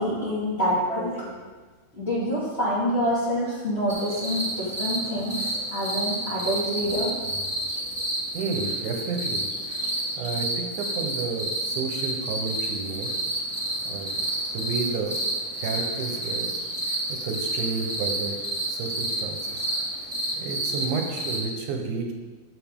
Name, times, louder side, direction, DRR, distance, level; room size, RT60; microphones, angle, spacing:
voice 1, 0.0-1.3 1.9-7.1, equal, 20° left, -7 dB, 2.1 m, -27 dB
sound 1, 3.9-21.4, right 1 dB, 25° right, 0.8 m, -30 dB
voice 2, 8.3-9.5 10.1-10.5 10.7-13.1 13.9-14.3 14.5-15.2 15.6-16.5 17.1-19.4 20.3-22.1, right 4 dB, 90° right, 3 dB, 2.6 m, -31 dB
13.5 x 6.8 x 3.7 m, 1.3 s
omnidirectional pair, 3.4 m